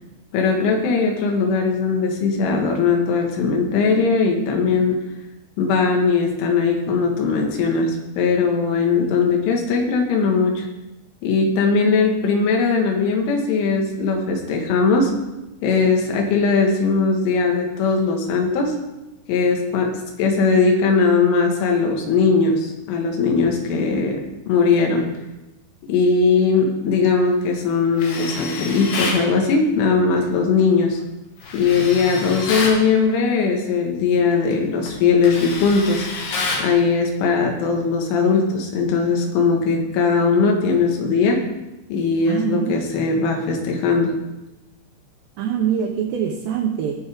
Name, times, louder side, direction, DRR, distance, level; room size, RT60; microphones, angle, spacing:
voice 1, 0.3-5.0 5.6-10.7 11.2-15.1 15.6-18.7 19.3-19.9 20.2-24.2 24.5-25.1 25.9-31.0 31.5-36.1 36.6-41.4 41.9-44.1, left 4 dB, 85° left, 1 dB, 4.0 m, -19 dB
Tools, 28.0-29.3 31.4-32.8 34.3-34.5 34.9-36.7, left 3 dB, 60° left, 2.8 m, -28 dB
voice 2, 42.3-42.8 45.4-47.0, right 8 dB, 75° right, 0 dB, 2.9 m, -24 dB
20.0 x 6.9 x 3.6 m, 1.0 s
omnidirectional pair, 5.5 m